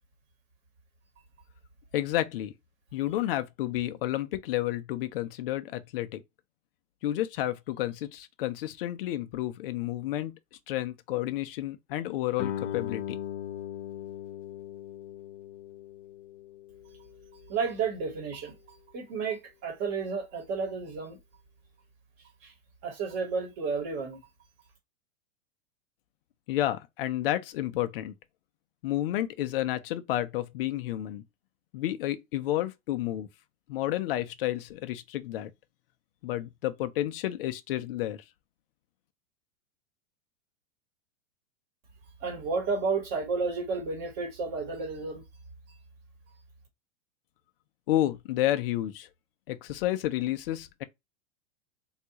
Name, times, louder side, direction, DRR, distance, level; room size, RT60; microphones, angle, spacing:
voice 1, 1.9-2.5 2.9-6.2 7.0-10.3 10.7-13.2 26.5-28.1 28.8-31.2 31.7-33.3 33.7-35.5 36.2-38.2 47.9-49.1 49.5-50.8, left 14 dB, 50° left, 0.5 m, -30 dB
Guitar, 12.4-17.7, left 10 dB, 75° left, 1.0 m, -39 dB
voice 2, 17.5-21.2 22.4-22.5 22.8-24.2 42.2-45.2, right 4 dB, 30° right, 1.1 m, -32 dB
3.5 x 2.4 x 2.8 m
supercardioid pair, 155°, 37 cm